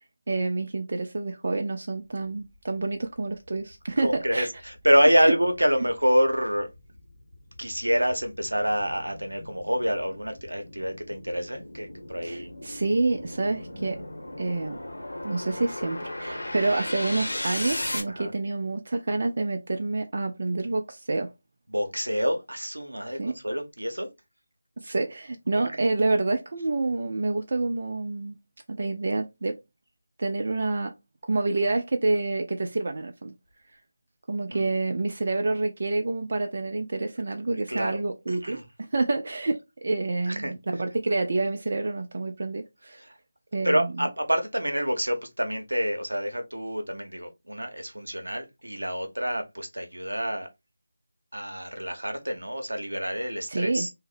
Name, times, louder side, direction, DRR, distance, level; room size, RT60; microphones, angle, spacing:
voice 1, 0.3-4.5 5.2-5.3 12.2-14.0 14.4-14.8 15.2-21.3 23.2-23.4 24.8-28.4 28.7-29.6 30.2-30.9 31.2-33.3 34.3-43.0 43.5-43.9 53.5-53.9, right 3 dB, 50° right, 0.3 m, -28 dB
sound 1, 3.3-3.4 3.9-18.0, left 1 dB, 80° left, 0.8 m, -37 dB
voice 2, 4.0-6.7 7.6-12.5 18.1-18.3 21.7-24.1 25.5-25.7 34.5-34.7 37.7-38.0 38.3-38.6 40.3-40.5 43.0-43.1 43.6-50.5 51.3-53.9, equal, 85° right, 0.7 m, -27 dB
2.6 x 2.0 x 2.4 m
figure-of-eight pair, 160°, 0 cm